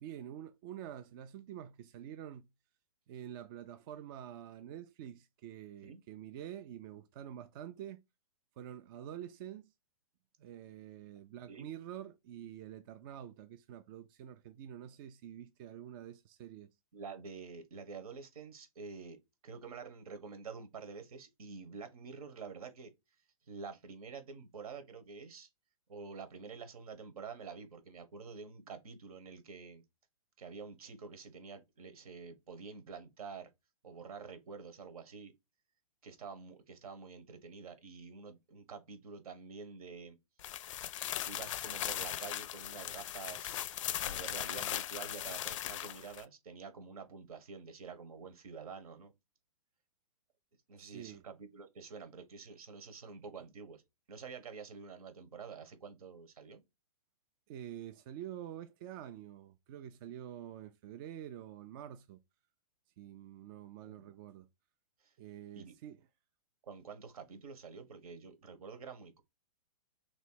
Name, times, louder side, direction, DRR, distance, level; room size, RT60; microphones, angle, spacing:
voice 1, 0.0-2.5 3.1-8.0 8.6-9.7 10.4-16.7 50.8-51.2 57.5-62.2 63.0-64.5 65.2-66.1, right 10 dB, 35° right, 0.4 m, -47 dB
voice 2, 16.9-22.9 23.5-25.5 25.9-29.8 30.4-33.5 33.8-35.3 36.0-40.2 41.2-43.6 44.0-49.1 50.7-53.8 54.1-56.6 63.8-64.1 65.0-65.1 65.5-65.8 66.6-69.2, right 5 dB, 75° right, 1.4 m, -48 dB
sound 1, 40.4-46.2, left 12 dB, 55° left, 0.4 m, -39 dB
3.1 x 3.0 x 4.6 m
hypercardioid pair, 140°, 19 cm